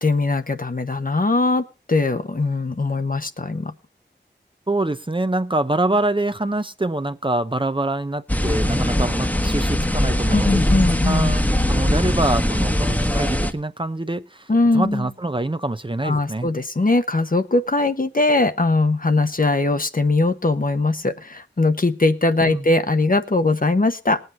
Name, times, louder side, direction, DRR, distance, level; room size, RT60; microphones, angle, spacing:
voice 1, 0.0-3.7 10.3-11.3 14.5-15.1 16.0-24.2, left 2 dB, 50° left, 1.0 m, -20 dB
voice 2, 4.7-10.6 11.1-16.5 22.5-22.7, right 2 dB, 25° right, 0.7 m, -25 dB
sound 1, 8.3-13.5, left 1 dB, 10° left, 1.2 m, -21 dB
19.5 x 8.1 x 3.9 m
wide cardioid pair, 60°, 19 cm